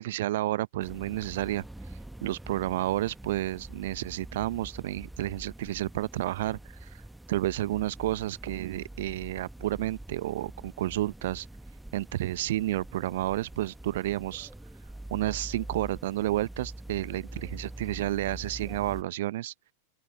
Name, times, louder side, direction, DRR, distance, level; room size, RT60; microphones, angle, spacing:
voice 1, 0.0-1.6 2.2-7.0 7.3-11.5 11.9-14.5 15.1-19.5, right 15 dB, 55° right, 0.8 m, -31 dB
sound 1, 0.8-19.0, right 1 dB, 5° right, 1.4 m, -44 dB
open air
figure-of-eight pair, 90°, 0 cm